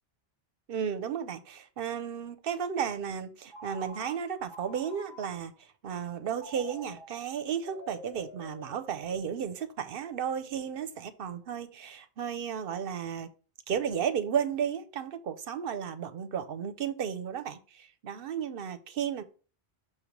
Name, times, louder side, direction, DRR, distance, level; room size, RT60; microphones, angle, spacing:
voice 1, 0.7-13.3 13.7-19.2, right 8 dB, 65° right, 0.8 m, -34 dB
Telephone, 3.5-5.5 6.3-9.4, equal, 50° left, 2.2 m, -48 dB
6.2 x 3.1 x 5.0 m
omnidirectional pair, 1.1 m